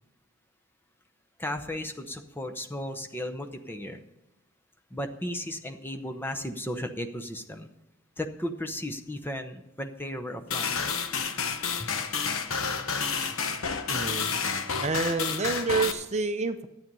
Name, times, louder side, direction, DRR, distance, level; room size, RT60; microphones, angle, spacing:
voice 1, 1.4-4.0 4.9-7.7 8.2-10.8 11.8-11.9, left 1 dB, 10° left, 6 dB, 0.8 m, -35 dB
sound 1, 10.5-15.9, left 5 dB, 90° left, 1.0 m, -30 dB
voice 2, 13.9-14.3 14.8-16.7, right 4 dB, 35° right, 8 dB, 0.7 m, -28 dB
12.5 x 8.9 x 5.4 m, 0.95 s
head